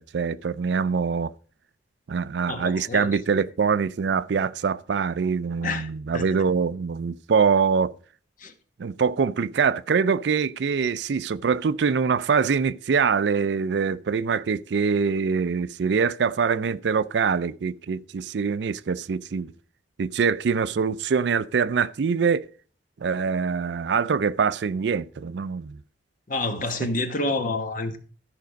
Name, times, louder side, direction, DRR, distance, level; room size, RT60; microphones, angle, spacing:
voice 1, 0.0-1.3 2.1-7.9 8.8-19.5 20.0-22.5 23.0-25.8, right 5 dB, 70° right, 0.4 m, -24 dB
voice 2, 2.5-3.2 5.6-5.9 6.1-6.4 8.4-8.5 26.3-28.0, left 2 dB, 45° left, 1.2 m, -28 dB
13.0 x 5.2 x 5.1 m
head